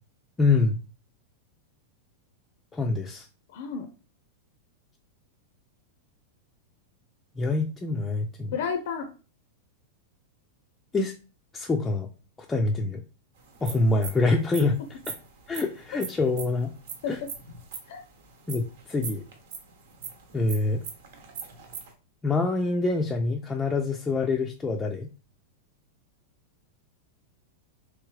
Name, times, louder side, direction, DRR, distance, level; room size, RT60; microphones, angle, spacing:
voice 1, 0.4-0.8 2.7-3.3 7.4-8.5 10.9-11.1 11.5-12.1 12.5-13.0 13.6-14.8 15.5-16.7 17.1-17.2 18.5-19.2 20.3-20.8 22.2-25.1, left 3 dB, 15° left, 1 dB, 0.4 m, -25 dB
voice 2, 3.5-3.9 8.5-9.1 15.9-16.0 17.0-17.3 17.9-18.0, left 6 dB, 65° left, 7 dB, 0.5 m, -31 dB
sound 1, 13.4-21.9, right 6 dB, 70° right, 1.0 m, -41 dB
3.5 x 3.1 x 3.2 m, 0.35 s
supercardioid pair, 140°, 0 cm